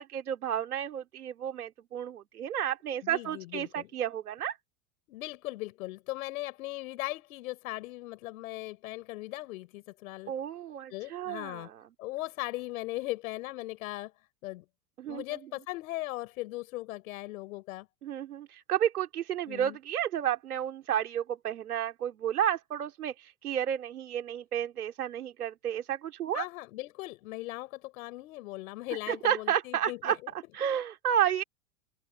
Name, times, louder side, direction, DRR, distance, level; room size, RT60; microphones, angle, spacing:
voice 1, 0.0-4.6 10.3-11.8 15.0-15.4 18.0-26.4 29.1-30.2 30.5-31.4, right 10 dB, 90° right, 2.9 m, -31 dB
voice 2, 3.0-3.9 5.1-10.3 10.9-11.7 12.0-14.1 14.4-14.7 15.1-17.9 19.5-19.8 26.3-30.3, left 18 dB, 70° left, 5.0 m, -38 dB
hypercardioid pair, 110°, 43 cm